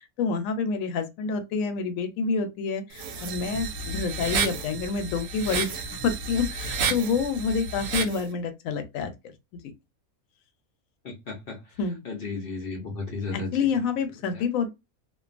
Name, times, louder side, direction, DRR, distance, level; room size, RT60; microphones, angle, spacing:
voice 1, 0.0-9.1 11.8-12.0 13.3-14.7, left 5 dB, 75° left, 0.9 m, -28 dB
sound 1, 2.9-8.2, right 5 dB, 70° right, 0.9 m, -31 dB
voice 2, 11.0-11.6 12.0-13.5 14.3-14.4, left 4 dB, 60° left, 0.6 m, -34 dB
2.5 x 2.2 x 2.4 m
omnidirectional pair, 1.5 m